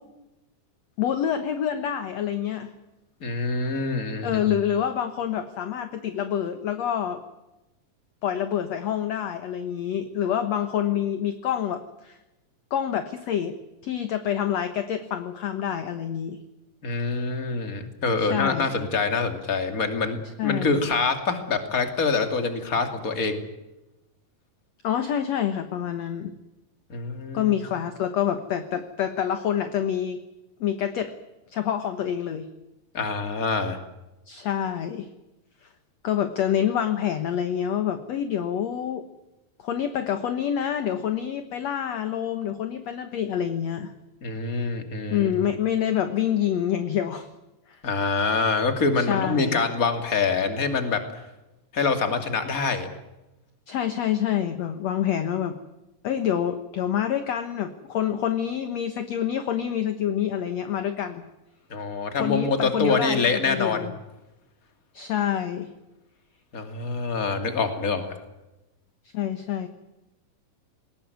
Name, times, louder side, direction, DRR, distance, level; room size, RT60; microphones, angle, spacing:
voice 1, 1.0-2.7 3.6-3.7 4.2-7.2 8.2-12.2 12.7-13.6 13.8-16.4 18.2-18.9 20.4-20.8 24.8-26.3 27.3-30.2 30.6-31.1 31.5-32.5 34.3-35.1 36.0-39.0 39.6-43.9 45.1-47.3 47.7-47.8 49.0-49.6 53.7-55.6 56.0-61.2 62.1-63.9 64.9-65.7 69.1-69.7, left 9 dB, 60° left, 9 dB, 2.1 m, -27 dB
voice 2, 3.2-4.4 16.8-23.4 26.9-27.5 32.9-33.8 44.2-45.3 47.8-51.0 51.7-52.9 61.7-63.9 66.5-68.2, left 4 dB, 25° left, 7 dB, 2.8 m, -25 dB
20.5 x 19.5 x 9.4 m, 0.98 s
omnidirectional pair, 4.0 m